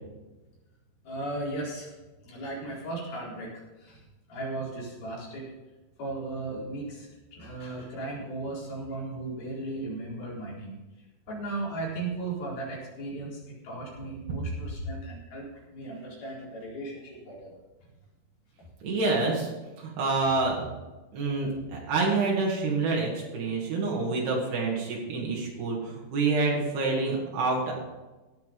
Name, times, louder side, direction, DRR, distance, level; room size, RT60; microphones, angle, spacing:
voice 1, 1.0-1.9 2.2-5.5 6.0-17.5 18.6-18.7, right 2 dB, 70° left, -5 dB, 6.1 m, -36 dB
voice 2, 18.8-19.5 19.8-20.7 21.1-27.7, right 3 dB, 85° right, -3 dB, 4.4 m, -27 dB
17.0 x 7.3 x 5.4 m, 1.1 s
omnidirectional pair, 4.5 m